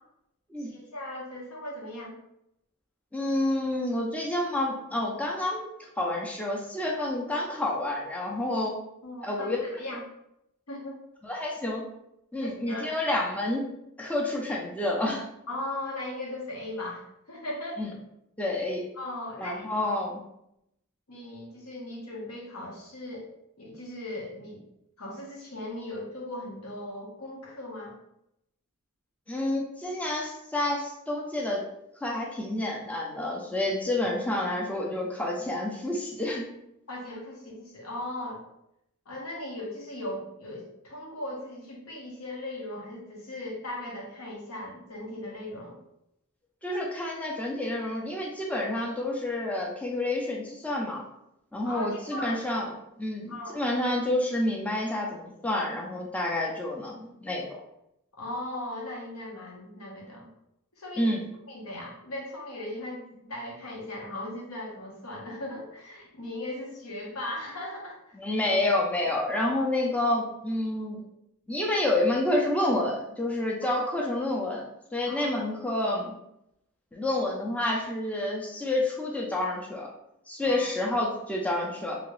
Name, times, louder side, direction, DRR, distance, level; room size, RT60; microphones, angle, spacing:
voice 1, 0.6-2.2 9.0-10.0 10.7-11.0 12.4-12.9 15.5-17.8 18.9-19.7 21.1-23.3 23.6-24.6 25.0-27.9 36.9-38.4 39.1-45.8 51.6-52.6 53.3-53.6 58.2-60.3 60.8-61.1 61.5-68.2 73.7-73.9 75.0-75.4 80.4-80.7, left 1 dB, 85° left, -2 dB, 1.0 m, -38 dB
voice 2, 3.1-5.7 6.0-8.7 9.2-9.6 11.2-11.8 12.3-13.7 14.0-15.2 17.8-17.9 18.4-18.9 19.4-20.2 29.3-31.6 32.0-36.5 46.6-51.0 51.5-52.7 53.0-57.5 61.0-61.3 68.2-71.0 71.5-76.1 76.9-79.9 80.3-82.0, left 1 dB, 5° left, -2 dB, 0.4 m, -29 dB
2.9 x 2.8 x 3.1 m, 0.81 s
head